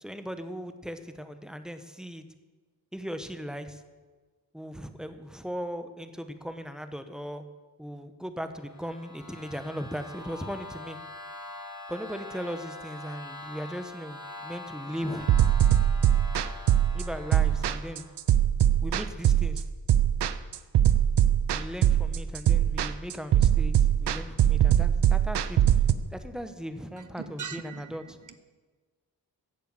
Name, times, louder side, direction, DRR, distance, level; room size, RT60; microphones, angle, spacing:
voice 1, 0.0-2.2 2.9-3.8 4.5-7.4 7.8-11.0 11.9-15.3 16.9-18.0 18.8-19.6 21.5-25.6 26.1-28.2, equal, ahead, 8 dB, 1.2 m, -38 dB
sound 1, 8.5-18.2, left 2 dB, 65° left, 4.6 m, -43 dB
sound 2, 15.3-25.9, right 10 dB, 80° right, 0.7 m, -22 dB
voice 2, 27.0-28.4, right 7 dB, 50° right, 10 dB, 1.1 m, -42 dB
13.5 x 8.6 x 7.8 m, 1.3 s
cardioid pair, 75°, 40 cm